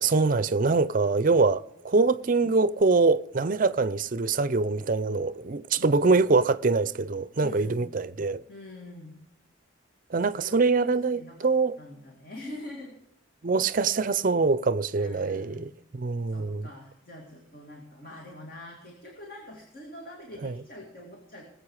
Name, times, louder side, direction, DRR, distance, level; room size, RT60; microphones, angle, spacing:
voice 1, 0.0-8.4 10.1-11.8 13.4-16.7 20.4-20.5, right 3 dB, 45° right, 0.5 m, -24 dB
voice 2, 5.7-6.2 7.4-8.0 8.5-9.2 10.1-10.6 10.9-11.5 11.8-13.0 14.9-15.7 16.3-21.5, left 1 dB, 45° left, 2.4 m, -44 dB
20.0 x 8.0 x 4.8 m
head